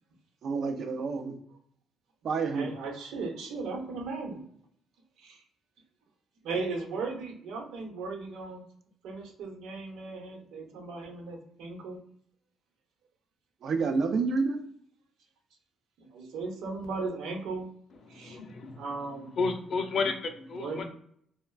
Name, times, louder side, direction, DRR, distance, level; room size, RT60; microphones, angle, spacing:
voice 1, 0.4-1.4 2.2-2.7 13.6-14.6, right 4 dB, 60° right, 6 dB, 0.5 m, -28 dB
voice 2, 2.4-4.4 5.2-5.4 6.4-8.6 9.0-12.0 16.0-17.7 18.1-18.4 18.7-19.3 20.6-20.8, right 3 dB, 85° right, 0 dB, 0.9 m, -37 dB
voice 3, 18.1-18.8 19.4-20.8, left 4 dB, 55° left, 5 dB, 0.5 m, -31 dB
3.3 x 2.1 x 2.3 m, 0.67 s
cardioid pair, 90°, 0 cm